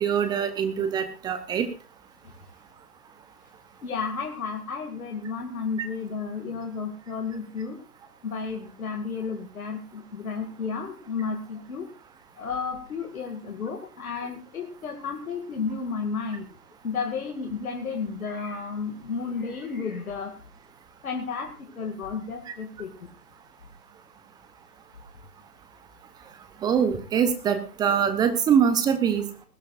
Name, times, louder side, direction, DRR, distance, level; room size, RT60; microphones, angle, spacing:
voice 1, 0.0-1.7 22.5-22.6 26.6-29.5, right 7 dB, 10° right, 9 dB, 0.8 m, -24 dB
voice 2, 3.8-7.8 8.2-11.9 12.4-16.6 16.8-20.4 21.0-23.1, left 5 dB, 65° left, 3 dB, 2.4 m, -32 dB
20.0 x 16.0 x 2.5 m, 0.35 s
figure-of-eight pair, 130°, 45 cm